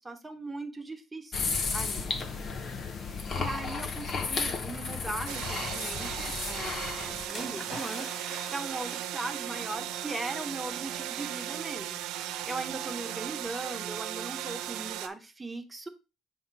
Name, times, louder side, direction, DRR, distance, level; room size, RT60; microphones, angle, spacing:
voice 1, 0.0-2.1 3.0-15.9, right 2 dB, 15° right, 6 dB, 1.2 m, -39 dB
sound 1, 1.3-7.3, left 4 dB, 50° left, 1.0 m, -33 dB
sound 2, 5.3-15.1, right 12 dB, 85° right, 0.6 m, -37 dB
sound 3, 7.3-10.3 10.6-10.9, left 1 dB, 20° left, 2.5 m, -44 dB
7.2 x 3.0 x 5.5 m, 0.29 s
supercardioid pair, 85°, 0 cm